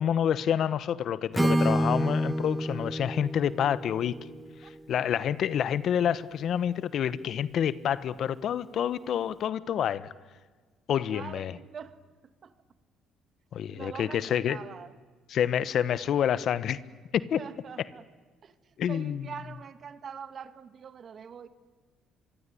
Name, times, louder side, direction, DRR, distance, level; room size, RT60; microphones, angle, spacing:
voice 1, 0.0-4.2 4.9-10.1 10.9-11.6 13.5-14.6 15.3-16.8 17.1-17.4 18.8-19.3, left 9 dB, 60° left, 16 dB, 1.1 m, -28 dB
Acoustic guitar / Strum, 1.3-5.3, right 1 dB, 10° right, 1.6 m, -29 dB
voice 2, 11.1-12.0 12.4-12.5 13.7-15.0 17.4-18.1 18.4-18.5 18.9-21.5, right 7 dB, 50° right, 12 dB, 1.8 m, -43 dB
25.0 x 23.5 x 9.9 m, 1.4 s
supercardioid pair, 80°, 0 cm